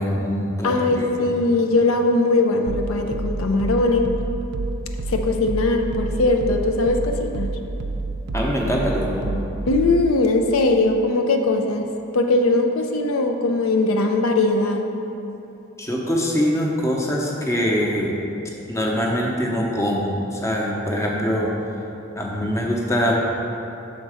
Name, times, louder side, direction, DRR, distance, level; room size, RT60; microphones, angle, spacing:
voice 1, 0.0-1.3 8.3-9.3 15.8-18.2 18.7-21.5 22.2-23.2, equal, 15° left, -2 dB, 0.7 m, -23 dB
voice 2, 0.6-4.2 5.1-7.5 9.7-11.9 12.1-14.8, left 2 dB, 85° left, 4 dB, 0.5 m, -20 dB
sound 1, 2.7-10.2, right 2 dB, 55° right, 0.4 m, -29 dB
6.5 x 4.0 x 4.9 m, 2.9 s
head